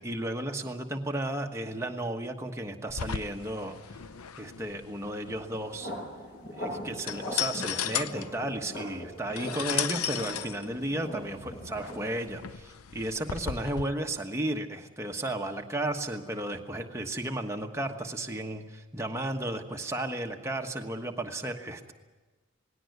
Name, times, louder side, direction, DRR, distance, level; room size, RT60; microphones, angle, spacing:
voice 1, 0.0-3.8 4.4-5.9 6.5-21.9, right 1 dB, 15° right, 3 dB, 1.2 m, -34 dB
sound 1, 2.9-13.8, left 9 dB, 80° left, 0.7 m, -36 dB
sound 2, 5.5-12.1, equal, 50° left, 7.0 m, -41 dB
19.0 x 17.0 x 9.5 m, 1.3 s
head